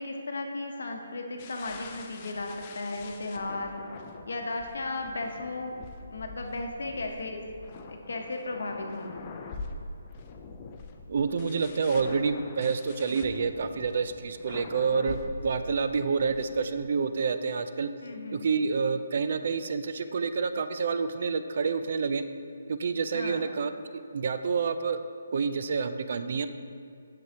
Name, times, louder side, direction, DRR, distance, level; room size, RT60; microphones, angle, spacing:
voice 1, 0.0-3.7 4.3-5.7 6.1-7.4 7.9-9.3 18.0-18.5 23.1-23.4, left 2 dB, 75° left, 3 dB, 0.9 m, -35 dB
sound 1, 1.4-16.9, left 3 dB, 30° left, 0.5 m, -44 dB
voice 2, 11.1-17.9 18.3-22.2 22.7-23.7 24.1-25.0 25.3-26.5, right 5 dB, 55° right, 10 dB, 0.4 m, -28 dB
7.7 x 6.9 x 2.8 m, 2.4 s
hypercardioid pair, 155°, 0 cm